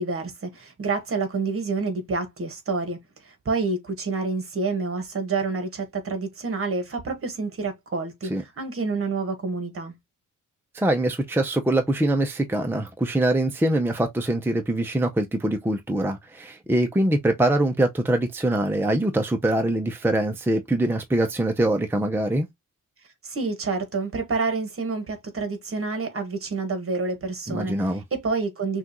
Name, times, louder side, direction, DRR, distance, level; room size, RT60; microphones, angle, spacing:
voice 1, 0.0-9.9 23.2-28.8, right 4 dB, 45° right, 1.5 m, -28 dB
voice 2, 10.7-22.5 27.5-28.0, right 1 dB, 5° right, 0.6 m, -23 dB
6.2 x 2.4 x 2.9 m
wide cardioid pair, 130°, 31 cm